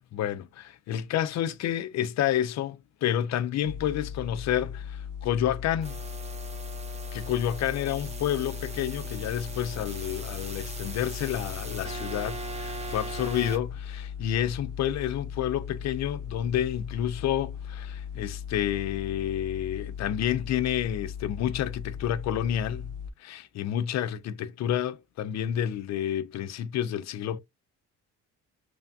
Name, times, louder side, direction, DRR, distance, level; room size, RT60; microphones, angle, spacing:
voice 1, 0.1-5.9 7.1-22.9 23.2-27.4, left 10 dB, 65° left, 0.4 m, -29 dB
sound 1, 3.6-23.1, left 8 dB, 85° right, 0.6 m, -38 dB
sound 2, 5.8-13.6, right 4 dB, 20° right, 0.7 m, -40 dB
3.2 x 2.2 x 2.6 m
cardioid pair, 90°, 30 cm